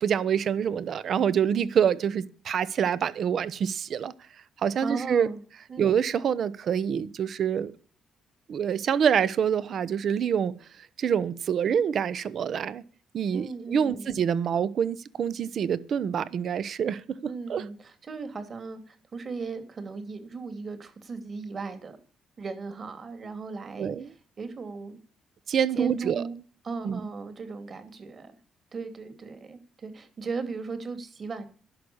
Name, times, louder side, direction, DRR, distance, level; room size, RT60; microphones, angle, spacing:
voice 1, 0.0-4.1 4.6-5.3 5.8-7.7 8.5-10.5 11.0-12.8 13.1-17.6 23.8-24.1 25.5-26.4 26.8-27.0, right 8 dB, 60° right, 17 dB, 0.9 m, -26 dB
voice 2, 4.8-5.4 5.7-5.9 13.3-14.1 17.2-22.0 22.4-25.0 25.7-26.4 26.6-28.3 28.7-31.5, right 4 dB, 45° right, 9 dB, 2.7 m, -37 dB
11.0 x 6.5 x 8.6 m, 0.42 s
cardioid pair, 90°, 0 cm